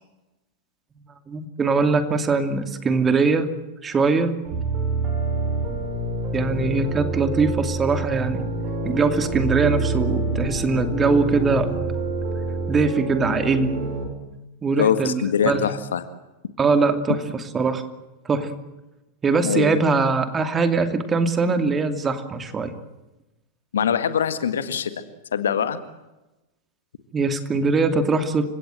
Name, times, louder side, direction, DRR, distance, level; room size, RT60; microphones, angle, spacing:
voice 1, 1.3-3.5 3.8-4.4 6.3-8.5 8.8-11.7 12.7-13.9 14.6-15.7 16.6-17.2 17.5-17.8 18.2-18.5 19.2-22.7 27.1-28.4, right 4 dB, 20° right, 8 dB, 2.7 m, -21 dB
sound 1, 4.4-14.0, right 2 dB, 35° right, 7.8 m, -27 dB
voice 2, 14.8-16.0 19.4-19.8 23.7-24.9 25.3-25.8, left 7 dB, 65° left, 11 dB, 1.8 m, -23 dB
29.5 x 17.5 x 7.9 m, 1.0 s
figure-of-eight pair, 90°, 0 cm